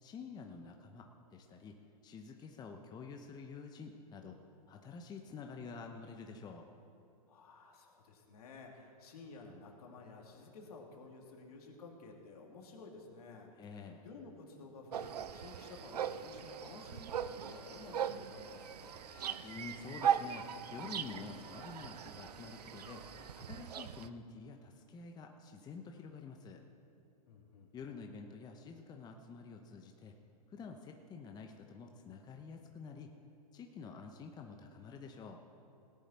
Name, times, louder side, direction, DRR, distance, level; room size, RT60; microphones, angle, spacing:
voice 1, 0.0-1.7 2.0-4.4 4.7-6.7 13.6-14.0 19.4-23.0 23.3-26.6 27.7-30.1 30.5-33.1 33.5-35.4, left 5 dB, 20° left, 3 dB, 0.9 m, -49 dB
voice 2, 7.3-18.9 27.3-27.7, left 3 dB, 70° left, 0 dB, 2.6 m, -53 dB
sound 1, 14.9-24.1, right 8 dB, 85° right, 0.6 m, -39 dB
sound 2, 15.0-23.3, left 1 dB, 5° left, 3.7 m, -61 dB
18.0 x 10.0 x 4.4 m, 2.8 s
hypercardioid pair, 120°, 20 cm